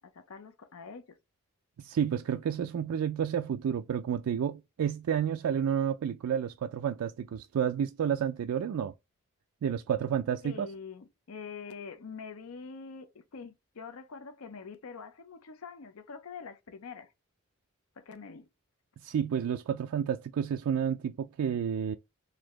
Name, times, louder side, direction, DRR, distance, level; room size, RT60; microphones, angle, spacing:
voice 1, 0.1-1.0 10.4-17.1 18.0-18.5, left 5 dB, 80° left, 0.6 m, -45 dB
voice 2, 1.8-8.9 9.6-10.7 19.0-22.0, right 8 dB, 85° right, 0.3 m, -30 dB
4.1 x 2.6 x 3.0 m
head